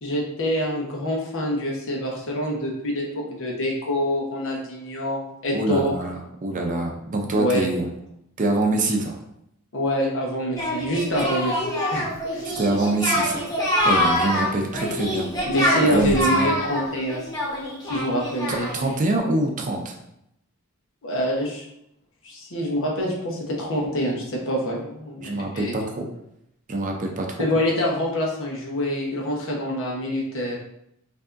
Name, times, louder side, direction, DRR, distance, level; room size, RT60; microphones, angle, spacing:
voice 1, 0.0-5.9 7.3-7.7 9.7-11.6 11.9-12.0 12.3-12.5 15.4-17.2 17.9-18.7 21.0-21.6 22.2-25.8 27.4-30.6, equal, 60° left, -2 dB, 1.0 m, -26 dB
voice 2, 5.5-7.9 8.4-9.2 12.5-13.4 13.8-15.3 15.8-16.5 18.5-19.9 25.2-26.1 26.7-27.5, right 2 dB, 35° right, 2 dB, 0.5 m, -25 dB
Singing, 10.6-18.9, equal, 15° left, 0.9 m, -25 dB
4.8 x 2.7 x 2.5 m, 0.79 s
head